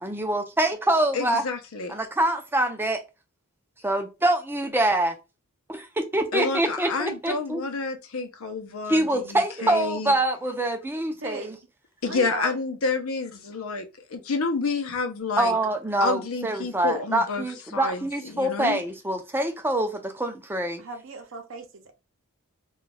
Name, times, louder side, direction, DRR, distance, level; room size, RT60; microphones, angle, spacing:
voice 1, 0.0-1.4 1.9-3.0 3.8-5.1 5.7-7.6 8.9-11.6 15.4-20.8, right 1 dB, 10° right, 0.5 m, -25 dB
voice 2, 1.1-2.0 6.3-10.1 12.0-15.6 16.0-17.5 17.7-18.0 18.3-18.8, left 4 dB, 75° left, 0.6 m, -29 dB
voice 3, 11.2-11.6 12.0-12.5 20.8-21.9, right 3 dB, 60° right, 0.7 m, -36 dB
2.3 x 2.3 x 3.9 m
head